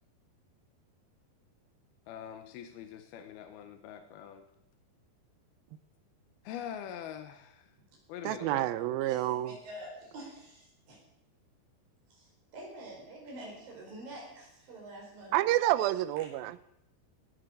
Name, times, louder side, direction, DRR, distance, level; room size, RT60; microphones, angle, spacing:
voice 1, 2.1-4.5 6.4-7.7 8.1-8.7, left 9 dB, 75° left, 7 dB, 2.7 m, -43 dB
voice 2, 8.2-9.6 15.3-16.7, right 15 dB, 85° right, 15 dB, 2.1 m, -29 dB
voice 3, 9.0-11.0 12.1-15.3, right 1 dB, 55° right, -1 dB, 6.4 m, -47 dB
18.5 x 9.5 x 6.7 m, 0.77 s
omnidirectional pair, 5.0 m